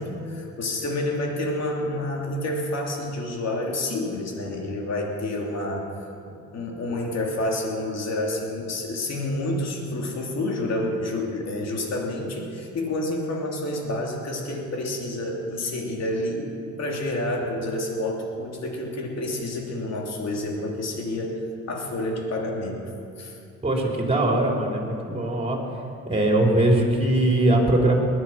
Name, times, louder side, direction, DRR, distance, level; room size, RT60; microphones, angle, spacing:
voice 1, 0.0-5.9 6.3-16.5 16.8-21.4 21.7-22.8 23.2-23.4, left 1 dB, 60° left, 0 dB, 3.2 m, -29 dB
voice 2, 23.6-25.6 26.1-28.0, right 1 dB, 20° right, 0 dB, 3.8 m, -21 dB
20.5 x 11.5 x 5.9 m, 2.5 s
cardioid pair, 90°, 30 cm